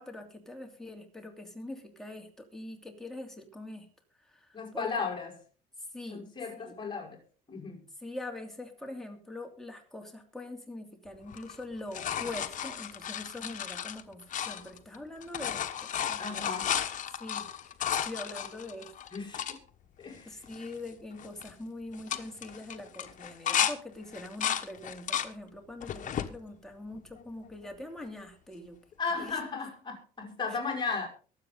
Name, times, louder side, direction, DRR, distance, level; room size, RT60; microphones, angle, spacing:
voice 1, 0.0-3.9 4.2-4.9 5.9-6.3 6.6-6.8 8.0-16.4 17.2-17.5 17.9-18.9 20.3-28.8 29.2-29.4, left 2 dB, 5° left, 2 dB, 2.9 m, -43 dB
voice 2, 4.5-5.3 6.1-7.2 7.5-7.9 16.2-16.7 19.1-19.6 20.0-20.5 29.0-31.1, left 4 dB, 25° left, 0 dB, 5.3 m, -35 dB
sound 1, 11.3-15.0 15.2-19.6 20.1-20.2 20.5-20.9 21.2-21.5 21.9-23.7 24.1-25.3 25.8-26.3 26.9-27.7 29.3-29.4, left 9 dB, 50° left, 1.2 m, -34 dB
23.0 x 7.9 x 3.9 m, 0.39 s
cardioid pair, 110°, 17 cm